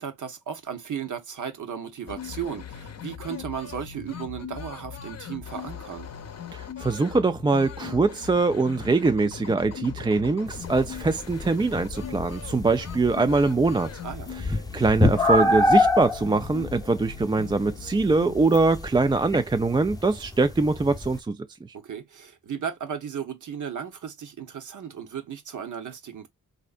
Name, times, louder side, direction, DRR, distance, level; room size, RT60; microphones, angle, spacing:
voice 1, 0.0-6.1 14.0-14.3 21.7-26.3, right 8 dB, 55° right, 1.0 m, -35 dB
sound 1, 2.1-18.5, left 9 dB, 45° left, 0.7 m, -40 dB
voice 2, 6.5-14.0 14.7-21.4, right 3 dB, 15° right, 0.3 m, -23 dB
sound 2, 10.5-21.2, left 1 dB, 10° left, 0.7 m, -27 dB
3.2 x 2.7 x 2.4 m
supercardioid pair, 50°, 36 cm